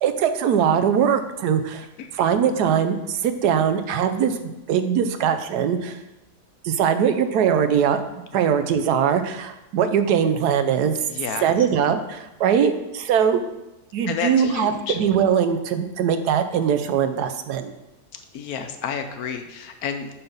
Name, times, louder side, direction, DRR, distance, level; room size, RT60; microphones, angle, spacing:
voice 1, 0.0-1.9 2.1-6.0 6.6-8.0 8.3-11.0 11.4-13.4 13.9-17.7, right 8 dB, 75° right, 9 dB, 1.1 m, -21 dB
voice 2, 11.1-11.4 14.1-15.0 18.3-20.1, left 7 dB, 70° left, 7 dB, 1.0 m, -30 dB
5.7 x 5.6 x 5.4 m, 0.95 s
omnidirectional pair, 1.8 m